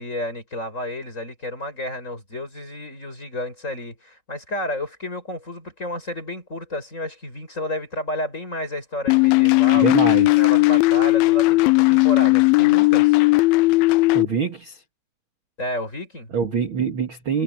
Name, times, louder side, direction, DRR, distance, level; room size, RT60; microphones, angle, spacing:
voice 1, 0.0-10.0 10.3-13.2 15.6-16.3, left 1 dB, 20° left, 7.1 m, -31 dB
sound 1, 9.1-14.3, left 23 dB, 80° left, 2.4 m, -16 dB
voice 2, 9.7-10.4 14.1-14.8 16.3-17.4, right 6 dB, 45° right, 1.9 m, -25 dB
omnidirectional pair, 4.5 m